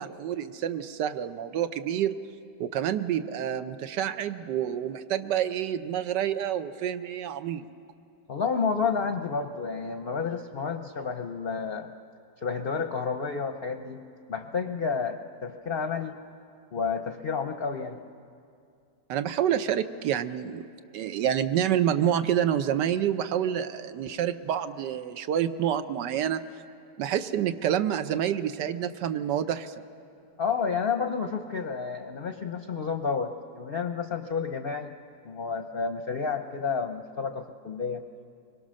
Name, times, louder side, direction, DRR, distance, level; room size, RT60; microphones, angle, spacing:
voice 1, 0.0-2.2 2.6-7.7 19.1-20.7 20.9-26.4 27.0-29.7, right 10 dB, 85° right, 10 dB, 1.3 m, -28 dB
voice 2, 8.3-11.9 12.4-14.0 14.3-16.2 16.7-18.0 30.4-34.9 35.2-38.0, left 5 dB, 50° left, 7 dB, 0.6 m, -30 dB
24.5 x 22.5 x 6.3 m, 2.4 s
omnidirectional pair, 1.8 m